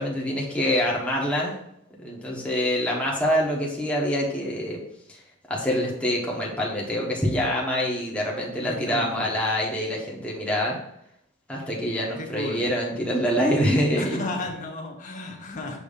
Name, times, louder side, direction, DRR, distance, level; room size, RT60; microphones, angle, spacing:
voice 1, 0.0-1.5 2.0-4.8 5.1-5.2 5.5-10.8 11.5-14.3, equal, 5° left, -3 dB, 1.2 m, -25 dB
voice 2, 8.6-9.3 12.2-12.6 13.9-15.8, left 2 dB, 40° left, -1 dB, 1.3 m, -33 dB
7.0 x 3.0 x 5.1 m, 0.78 s
head